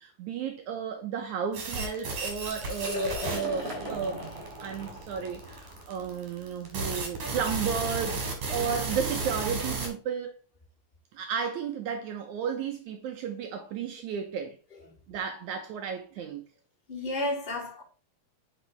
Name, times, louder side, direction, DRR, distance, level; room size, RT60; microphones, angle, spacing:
voice 1, 0.0-4.2 4.6-10.3 11.1-14.6 15.1-16.4, right 7 dB, 75° right, 1.9 m, -33 dB
sound 1, 1.5-9.9, right 3 dB, 55° right, 2.8 m, -33 dB
Liquid, 2.3-8.0, equal, 25° right, 2.4 m, -40 dB
voice 2, 2.8-3.1 16.9-17.8, left 2 dB, 15° left, 2.3 m, -32 dB
7.8 x 5.4 x 3.3 m
omnidirectional pair, 4.1 m